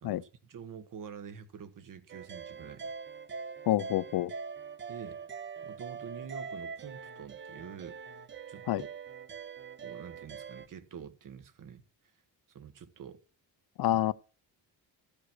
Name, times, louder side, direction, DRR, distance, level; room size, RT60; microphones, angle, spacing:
voice 1, 0.0-2.9 4.9-8.2 8.5-8.9 9.8-11.8 12.5-13.2 13.9-14.0, right 7 dB, 50° right, 1.3 m, -47 dB
sound 1, 2.1-10.7, right 5 dB, 30° right, 0.7 m, -43 dB
voice 2, 3.7-4.3 8.7-8.8 13.8-14.1, left 14 dB, 65° left, 0.6 m, -27 dB
14.5 x 5.1 x 6.1 m
cardioid pair, 160°, 41 cm